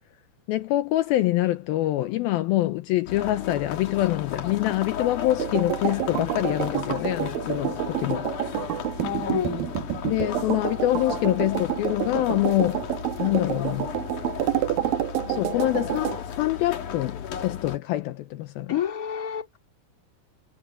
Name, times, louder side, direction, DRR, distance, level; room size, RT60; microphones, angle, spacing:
voice 1, 0.5-8.3 10.0-12.8 13.2-13.9 15.3-18.7, left 15 dB, 75° left, 2.5 m, -25 dB
sound 1, 3.1-17.8, left 8 dB, 60° left, 3.2 m, -35 dB
sound 2, 5.4-16.2, right 13 dB, 70° right, 2.9 m, -29 dB
voice 2, 9.0-9.7 18.7-19.6, left 8 dB, 25° left, 2.4 m, -29 dB
omnidirectional pair, 4.5 m